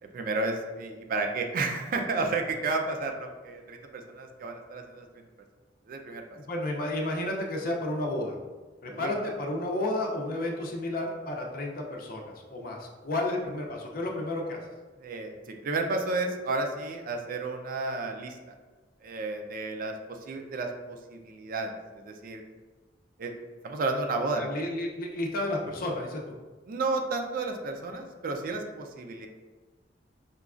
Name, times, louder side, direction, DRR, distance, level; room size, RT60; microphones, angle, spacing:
voice 1, 0.0-5.1 5.9-6.2 8.9-9.2 15.0-18.4 19.0-22.4 23.2-23.3 23.6-24.4 26.7-29.3, right 3 dB, 50° right, 4 dB, 0.4 m, -32 dB
voice 2, 6.3-8.4 8.8-14.6 24.4-26.2, left 1 dB, 55° left, 0 dB, 0.5 m, -32 dB
5.0 x 2.3 x 2.4 m, 1.3 s
head